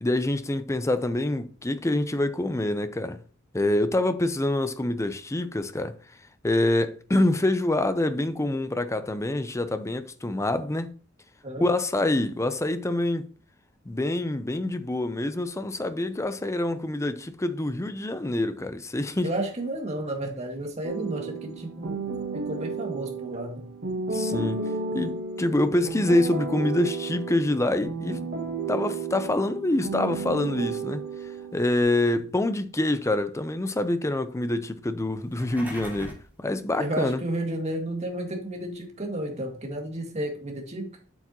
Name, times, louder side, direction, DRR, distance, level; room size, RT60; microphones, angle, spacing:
voice 1, 0.0-3.2 3.5-5.9 6.4-10.9 11.6-13.2 13.9-19.3 24.1-24.6 24.9-28.2 28.7-31.0 31.5-37.2, left 1 dB, 15° left, 0.6 m, -26 dB
voice 2, 19.2-22.0 22.3-23.7 36.8-40.9, right 1 dB, 35° right, 2.0 m, -32 dB
sound 1, 20.8-31.8, right 4 dB, 50° right, 1.3 m, -33 dB
sound 2, 35.2-36.3, equal, 10° right, 2.6 m, -40 dB
8.0 x 6.9 x 2.9 m
head